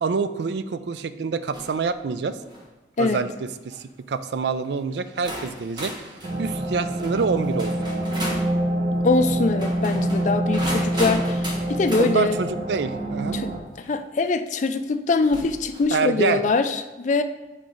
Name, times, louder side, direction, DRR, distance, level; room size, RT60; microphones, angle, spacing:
voice 1, 0.0-2.4 3.0-5.9 6.4-8.1 12.0-13.4 15.9-16.4, right 5 dB, 70° right, 12 dB, 0.4 m, -26 dB
sound 1, 1.5-1.8 2.3-2.7 3.5-3.8 4.6-4.7 5.2-8.5 9.5-12.1 13.8-13.9 15.2-15.9, equal, 25° right, 1.2 m, -34 dB
sound 2, 6.2-13.6, right 1 dB, 55° right, 1.2 m, -26 dB
voice 2, 9.0-11.4 11.7-12.4 13.3-13.5 13.9-17.2, left 3 dB, 40° left, 9 dB, 0.4 m, -23 dB
7.4 x 4.9 x 3.9 m, 1.2 s
head